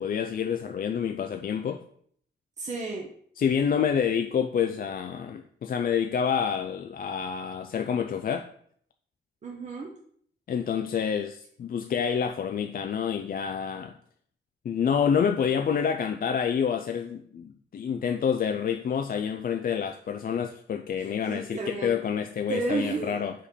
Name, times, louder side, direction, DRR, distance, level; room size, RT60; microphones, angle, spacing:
voice 1, 0.0-1.8 3.4-8.5 10.5-13.9 14.7-23.3, left 7 dB, 50° left, 6 dB, 0.4 m, -28 dB
voice 2, 2.6-3.1 9.4-9.9 21.0-21.9 22.5-23.2, right 3 dB, 35° right, -1 dB, 0.9 m, -32 dB
5.0 x 4.2 x 5.1 m, 0.63 s
wide cardioid pair, 130°, 19 cm